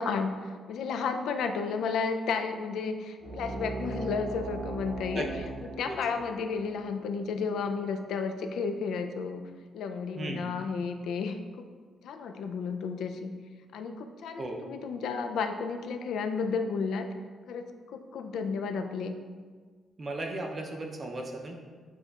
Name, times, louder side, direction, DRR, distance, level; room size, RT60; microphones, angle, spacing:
voice 1, 0.0-5.3 5.6-9.5 9.7-11.7 12.0-13.3 13.7-17.1 17.5-19.2, left 5 dB, 80° left, 7 dB, 0.3 m, -32 dB
sound 1, 3.2-8.3, right 2 dB, 75° right, 0.9 m, -39 dB
voice 2, 10.1-10.5 14.4-14.6 20.0-21.6, right 2 dB, 30° right, 2 dB, 0.5 m, -36 dB
7.6 x 2.9 x 2.3 m, 1.5 s
cardioid pair, 160°, 0 cm